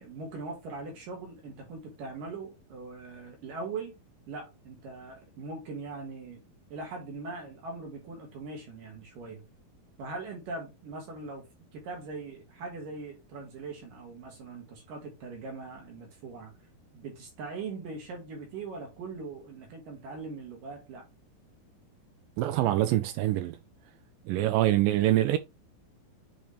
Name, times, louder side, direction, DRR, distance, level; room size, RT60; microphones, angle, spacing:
voice 1, 0.0-3.9 4.3-6.4 6.7-9.4 10.0-11.5 11.7-16.5 16.9-21.1, right 3 dB, 65° right, 3.5 m, -41 dB
voice 2, 22.4-23.6 24.3-25.4, right 14 dB, 85° right, 2.0 m, -25 dB
7.9 x 4.0 x 3.3 m
omnidirectional pair, 4.3 m